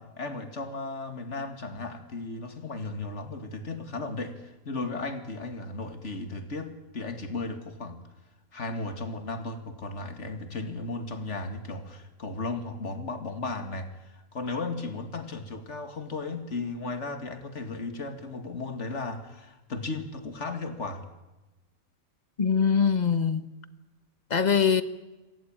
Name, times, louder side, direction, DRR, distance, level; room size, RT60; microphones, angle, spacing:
voice 1, 0.0-8.1 8.5-21.0, left 3 dB, 55° left, 2.4 m, -35 dB
voice 2, 22.4-23.4 24.3-24.8, left 6 dB, 35° left, 1.3 m, -22 dB
27.5 x 18.5 x 8.9 m
omnidirectional pair, 1.4 m